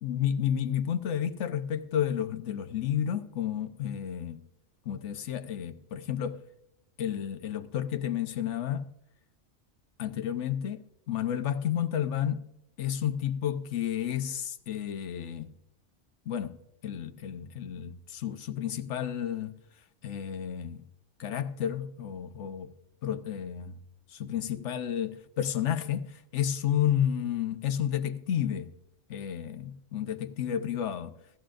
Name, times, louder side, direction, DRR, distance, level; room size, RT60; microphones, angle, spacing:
voice 1, 0.0-4.4 4.9-6.4 7.0-8.9 10.0-12.5 12.8-15.5 16.3-16.6 16.8-19.5 20.0-20.8 21.2-22.7 23.0-23.8 24.1-28.7 29.1-31.1, left 9 dB, 75° left, 1.1 m, -31 dB
17.0 x 14.0 x 2.5 m
omnidirectional pair, 1.2 m